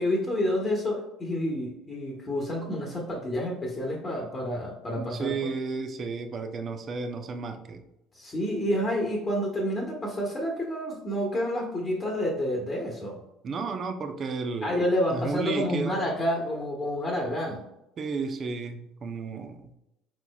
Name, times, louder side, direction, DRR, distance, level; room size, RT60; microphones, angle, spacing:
voice 1, 0.0-5.3 8.1-13.2 14.6-17.6, equal, 30° left, -1 dB, 1.1 m, -29 dB
voice 2, 5.0-7.8 13.4-14.8 15.1-16.1 18.0-19.7, right 4 dB, 40° right, 7 dB, 0.6 m, -33 dB
4.5 x 4.1 x 2.3 m, 0.88 s
supercardioid pair, 100°, 0 cm